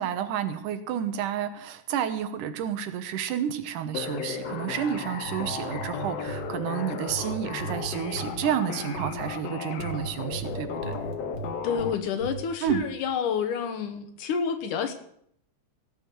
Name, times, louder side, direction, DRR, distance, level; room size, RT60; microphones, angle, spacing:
voice 1, 0.0-11.0 12.6-12.8, right 9 dB, 90° right, 9 dB, 2.6 m, -30 dB
sound 1, 3.9-11.9, left 6 dB, 65° left, 1.9 m, -35 dB
sound 2, 5.1-6.5 7.1-8.5 9.0-9.3 9.8-11.9 12.2-12.8, right 5 dB, 45° right, 1.9 m, -37 dB
voice 2, 11.6-14.9, left 6 dB, 80° left, 8 dB, 2.8 m, -29 dB
17.0 x 6.3 x 7.8 m, 0.70 s
omnidirectional pair, 3.6 m